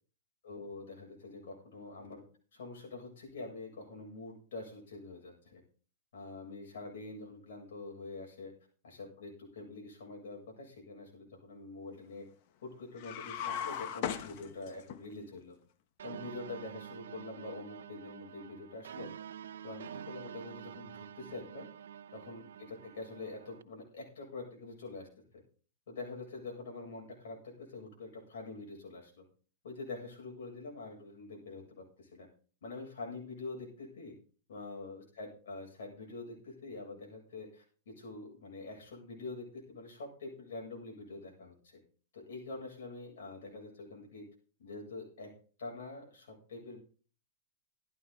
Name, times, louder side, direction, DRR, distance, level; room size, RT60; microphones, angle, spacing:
voice 1, 0.4-2.2 2.5-5.6 6.1-8.5 8.8-12.3 12.6-15.6 16.0-19.1 19.6-21.7 22.1-25.1 25.3-25.4 25.9-29.3 29.6-32.3 32.6-34.1 34.5-41.8 42.1-44.3 44.6-45.3 45.6-46.8, left 3 dB, 80° left, 0 dB, 7.8 m, -45 dB
sound 1, 13.0-15.0, left 9 dB, 50° left, 1.2 m, -37 dB
sound 2, 16.0-23.6, right 8 dB, 90° right, 0.7 m, -48 dB
14.5 x 11.0 x 4.1 m, 0.41 s
hypercardioid pair, 140°, 0 cm